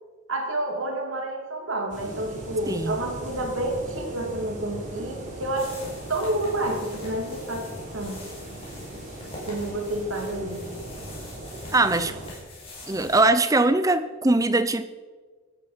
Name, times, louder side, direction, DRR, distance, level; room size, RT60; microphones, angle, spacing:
voice 1, 0.3-5.8 6.1-7.7 7.9-8.2 9.5-10.6, right 1 dB, 70° right, 3 dB, 2.8 m, -29 dB
sound 1, 1.9-12.3, right 1 dB, 35° right, 3.9 m, -39 dB
voice 2, 2.7-3.0 11.7-12.2 12.9-14.9, right 2 dB, 15° right, 12 dB, 0.6 m, -21 dB
sound 2, 5.6-13.5, left 2 dB, 25° left, 5.2 m, -44 dB
17.5 x 12.5 x 5.2 m, 1.4 s
head